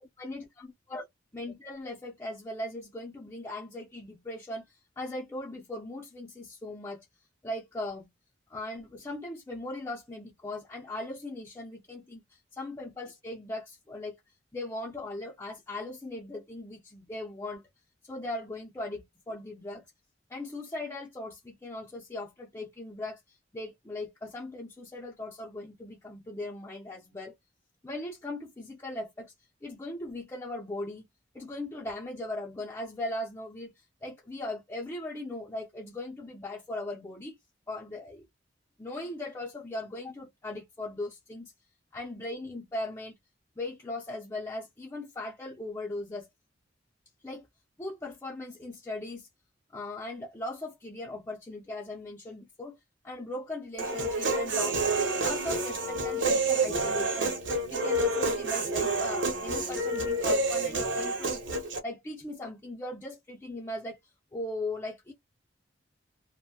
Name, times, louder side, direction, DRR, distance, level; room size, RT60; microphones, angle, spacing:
voice 1, 1.3-7.1 7.4-8.1 8.5-14.2 14.5-17.6 18.1-19.9 20.3-27.3 27.8-29.3 29.6-31.1 31.3-37.4 37.7-38.2 38.8-41.5 41.9-43.1 43.6-46.3 47.2-47.5 47.8-49.3 49.7-52.8 53.0-54.8 55.2-64.0 64.3-65.1, left 2 dB, 15° left, 0.6 m, -39 dB
Human voice, 53.8-61.8, right 2 dB, 75° right, 0.9 m, -28 dB
2.6 x 2.1 x 2.8 m
head